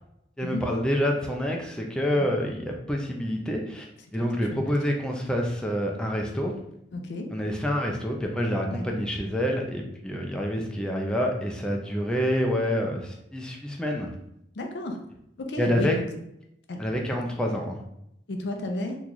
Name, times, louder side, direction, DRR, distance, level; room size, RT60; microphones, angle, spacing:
voice 1, 0.4-3.9 4.1-6.5 7.3-14.1 15.6-16.0 16.8-17.8, equal, 5° left, 0 dB, 0.4 m, -27 dB
voice 2, 6.9-7.3 8.7-8.8 14.5-15.0 15.5-16.1 16.7-16.8 18.3-19.0, left 1 dB, 70° left, 3 dB, 0.5 m, -32 dB
3.0 x 2.3 x 3.9 m, 0.79 s
head